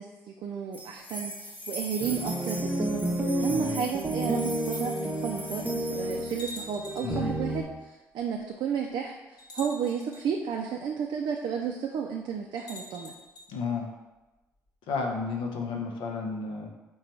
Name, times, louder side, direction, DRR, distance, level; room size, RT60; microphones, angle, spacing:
voice 1, 0.0-3.1 3.4-9.2 9.5-13.1, right 7 dB, 60° right, 1 dB, 0.4 m, -32 dB
sound 1, 0.7-6.4, right 1 dB, 20° left, 1.0 m, -41 dB
sound 2, 2.0-7.6, right 1 dB, 20° right, 0.7 m, -31 dB
voice 2, 3.5-3.8 7.0-7.3 13.5-13.9 14.9-16.7, left 4 dB, 70° left, 2 dB, 0.6 m, -32 dB
sound 3, 6.4-7.2 8.4-8.5 9.4-10.2 12.6-13.5, left 1 dB, 55° left, 1.1 m, -44 dB
3.9 x 2.3 x 4.2 m, 1.1 s
hypercardioid pair, 50°, 9 cm